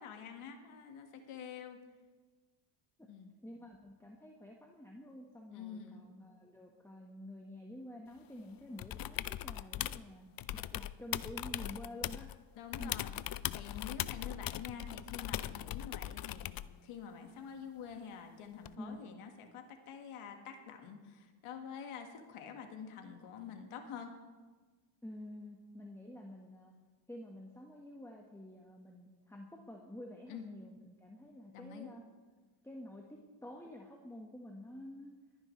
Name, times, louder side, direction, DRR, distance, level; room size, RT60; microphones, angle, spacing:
voice 1, 0.0-1.8 3.0-3.4 5.5-6.1 12.5-13.1 13.5-24.1 30.3-30.4 31.5-31.9, left 7 dB, 85° left, 4 dB, 1.9 m, -47 dB
voice 2, 3.4-12.3 12.8-13.0 18.8-19.0 25.0-26.7 27.1-32.0 32.6-35.1, left 1 dB, 5° left, 0 dB, 1.4 m, -49 dB
sound 1, 8.8-10.0 10.4-12.4 12.7-16.8 18.7-18.8, left 13 dB, 45° left, 0.5 m, -40 dB
26.0 x 10.0 x 3.3 m, 1.4 s
cardioid pair, 80°, 50 cm